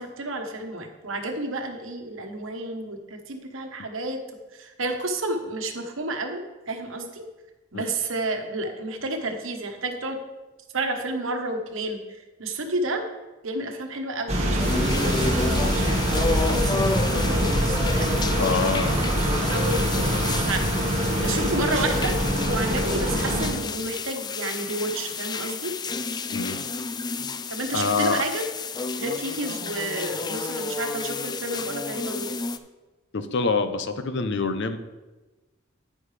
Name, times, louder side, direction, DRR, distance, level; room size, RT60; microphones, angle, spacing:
voice 1, 0.0-4.2 4.5-6.4 6.7-7.2 7.7-10.2 10.7-12.0 12.4-13.0 13.4-18.7 19.5-20.7 21.2-22.2 22.4-25.7 27.5-28.4 28.9-32.3, right 2 dB, 85° right, 5 dB, 1.2 m, -31 dB
sound 1, 14.3-23.5, right 1 dB, 35° right, 1.7 m, -24 dB
sound 2, 14.6-32.6, left 4 dB, 20° left, 0.3 m, -31 dB
voice 2, 18.4-19.0 21.2-21.6 26.3-26.6 27.7-28.2 33.1-34.8, left 4 dB, 65° left, 10 dB, 0.7 m, -26 dB
9.6 x 9.5 x 3.3 m, 1.2 s
head